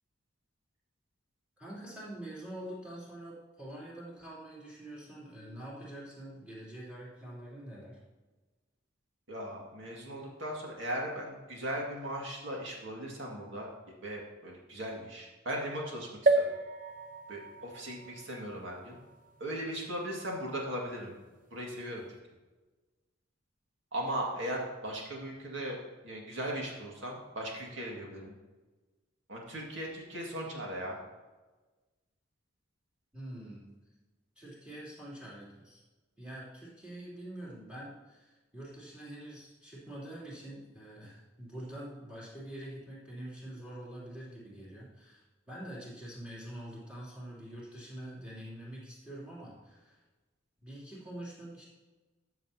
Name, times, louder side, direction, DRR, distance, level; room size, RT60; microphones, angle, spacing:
voice 1, 1.6-8.0 33.1-33.7 34.4-35.8 36.2-50.0 50.6-51.6, right 1 dB, 5° right, -7 dB, 2.9 m, -45 dB
voice 2, 9.3-13.7 14.0-16.4 17.3-19.0 19.4-21.1 21.5-22.0 23.9-25.8 26.0-28.3 29.3-31.0, right 1 dB, 75° right, -2 dB, 2.0 m, -38 dB
sound 1, 16.3-19.9 20.5-20.6 20.8-20.9, right 2 dB, 45° right, 0.8 m, -32 dB
13.5 x 7.0 x 2.8 m, 1.2 s
head